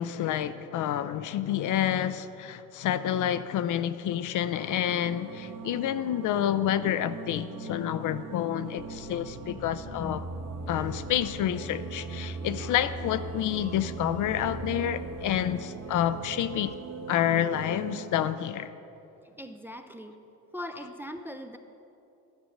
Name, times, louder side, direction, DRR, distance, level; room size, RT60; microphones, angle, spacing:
voice 1, 0.0-10.2 10.7-16.7 17.1-18.7, left 11 dB, 50° left, 12 dB, 0.5 m, -29 dB
sound 1, 4.7-18.3, right 4 dB, 40° right, 1.0 m, -40 dB
sound 2, 8.8-16.8, left 2 dB, 20° left, 0.8 m, -48 dB
sound 3, 11.9-18.1, right 4 dB, 85° right, 1.8 m, -53 dB
voice 2, 19.2-20.2 20.5-21.6, left 1 dB, 5° right, 7 dB, 0.4 m, -40 dB
11.5 x 6.1 x 6.5 m, 2.9 s
supercardioid pair, 95°, 38 cm